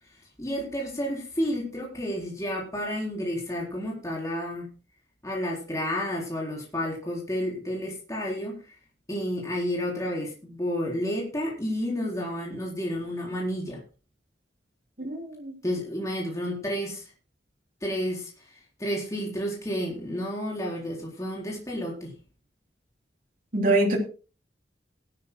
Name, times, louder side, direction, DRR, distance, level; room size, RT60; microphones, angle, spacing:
voice 1, 0.4-4.7 5.2-8.7 9.1-13.8 15.6-17.1 17.8-18.5 18.8-22.1, equal, 20° left, -3 dB, 4.1 m, -31 dB
voice 2, 15.0-15.5 23.5-24.0, right 2 dB, 50° right, 0 dB, 3.6 m, -24 dB
19.0 x 12.5 x 2.2 m, 0.35 s
head